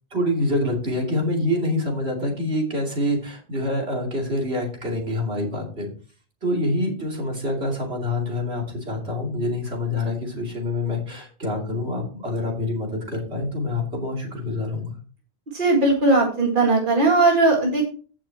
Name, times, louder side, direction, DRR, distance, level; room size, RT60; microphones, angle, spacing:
voice 1, 0.1-5.9 6.4-15.0, left 1 dB, 70° right, -1 dB, 3.1 m, -26 dB
voice 2, 15.5-17.8, right 2 dB, 50° right, -1 dB, 2.0 m, -18 dB
16.0 x 6.1 x 2.9 m, 0.39 s
omnidirectional pair, 1.1 m